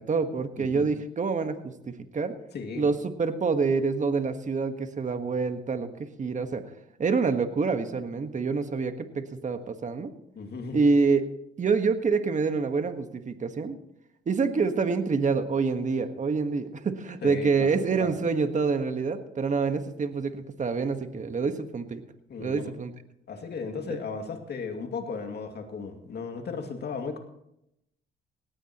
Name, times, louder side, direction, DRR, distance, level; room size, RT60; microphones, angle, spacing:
voice 1, 0.0-2.3 2.8-5.9 6.2-6.6 7.0-10.1 10.7-11.3 11.6-13.8 14.3-22.0 22.4-22.9, right 4 dB, 40° right, 8 dB, 1.5 m, -27 dB
voice 2, 2.5-2.9 10.3-10.8 17.2-18.1 22.3-22.6 23.3-27.2, left 5 dB, 55° left, 4 dB, 2.4 m, -35 dB
18.0 x 16.5 x 3.1 m, 0.80 s
cardioid pair, 90°, 20 cm